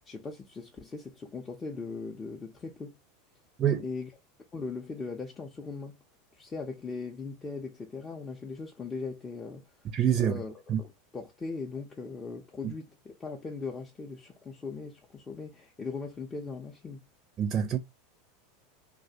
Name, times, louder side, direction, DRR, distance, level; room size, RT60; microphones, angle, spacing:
voice 1, 0.1-3.0 3.8-4.1 4.5-6.0 6.3-9.6 10.2-17.0, left 4 dB, 20° left, 0.5 m, -39 dB
voice 2, 9.8-10.4 10.7-10.8 12.6-12.7 17.4-17.8, right 9 dB, 35° right, 0.4 m, -26 dB
2.3 x 2.1 x 2.7 m
hypercardioid pair, 105°, 0 cm